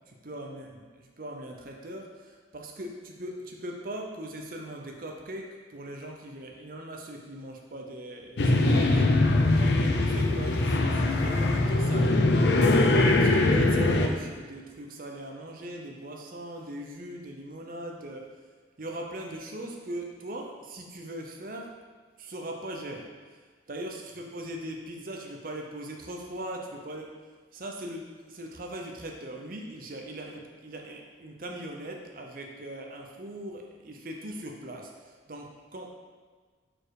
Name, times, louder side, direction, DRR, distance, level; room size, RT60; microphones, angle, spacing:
voice 1, 0.1-12.2 12.8-18.3 18.8-21.7 22.2-23.1 23.7-27.1 27.5-35.9, right 1 dB, 45° right, 1 dB, 0.7 m, -40 dB
sound 1, 8.4-14.1, left 2 dB, 65° left, 0.5 m, -22 dB
4.6 x 4.2 x 4.8 m, 1.5 s
head